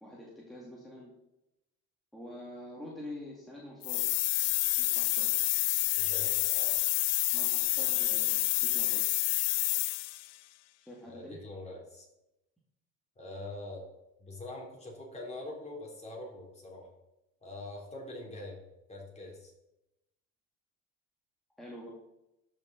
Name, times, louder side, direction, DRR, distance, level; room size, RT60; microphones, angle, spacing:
voice 1, 0.0-1.1 2.1-4.1 4.8-5.3 7.3-9.3 10.8-11.4 21.6-21.9, left 1 dB, ahead, -5 dB, 2.2 m, -46 dB
sound 1, 3.8-10.3, left 18 dB, 55° left, 0.4 m, -28 dB
voice 2, 6.0-6.8 11.0-12.1 13.2-13.9 14.2-16.9 17.4-18.6 18.9-19.5, left 2 dB, 20° left, -2 dB, 3.4 m, -44 dB
13.5 x 5.4 x 4.0 m, 0.90 s
cardioid pair, 115°, 31 cm